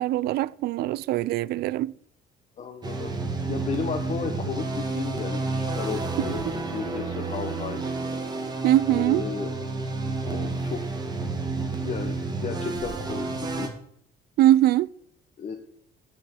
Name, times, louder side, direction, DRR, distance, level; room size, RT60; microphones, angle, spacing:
voice 1, 0.0-1.9 6.2-6.3 8.6-9.2 14.4-14.9, right 14 dB, 70° right, 0.4 m, -22 dB
voice 2, 2.6-3.2 3.5-7.8 8.9-9.5 10.2-10.8 11.8-12.1 12.4-13.7 15.4-15.5, left 6 dB, 45° left, 1.3 m, -33 dB
sound 1, 2.8-13.7, right 3 dB, 25° right, 2.0 m, -30 dB
7.7 x 6.9 x 8.2 m
cardioid pair, 110°, 17 cm